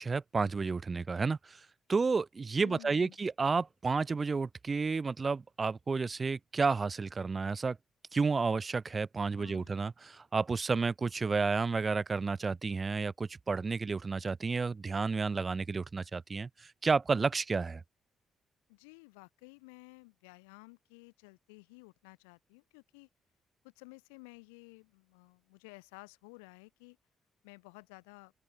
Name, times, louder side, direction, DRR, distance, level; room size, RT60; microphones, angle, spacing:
voice 1, 0.0-1.6 1.9-7.8 8.1-17.8, right 4 dB, 40° right, 0.8 m, -31 dB
voice 2, 2.6-3.2 9.4-9.9 18.7-23.1 23.6-27.0 27.4-28.3, left 31 dB, 85° left, 5.9 m, -54 dB
open air
hypercardioid pair, 45°, 0 cm